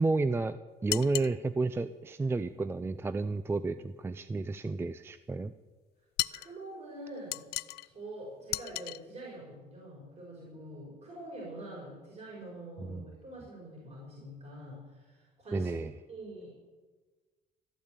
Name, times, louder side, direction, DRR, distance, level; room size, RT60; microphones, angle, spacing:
voice 1, 0.0-5.5 12.8-13.1 15.5-15.9, right 3 dB, 15° right, 13 dB, 0.4 m, -31 dB
sound 1, 0.9-1.4 6.2-6.5 7.3-7.9 8.5-9.0, left 17 dB, 70° left, 0.4 m, -34 dB
voice 2, 6.3-7.5 7.8-15.7 16.1-16.5, right 1 dB, 40° right, -3 dB, 5.4 m, -45 dB
14.0 x 8.7 x 8.2 m, 1.3 s
cardioid pair, 110°, 17 cm